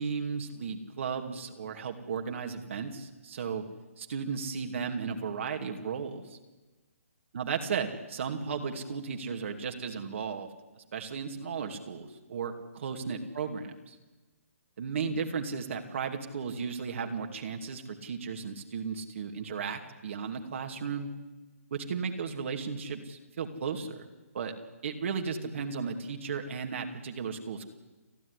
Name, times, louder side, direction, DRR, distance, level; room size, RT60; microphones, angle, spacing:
voice 1, 0.0-3.6 4.0-6.4 7.3-10.5 10.8-14.0 14.8-21.1 21.7-24.0 24.3-24.5 24.8-27.7, right 6 dB, 55° right, 3 dB, 2.6 m, -35 dB
30.0 x 11.0 x 9.8 m, 1.1 s
hypercardioid pair, 155°, 8 cm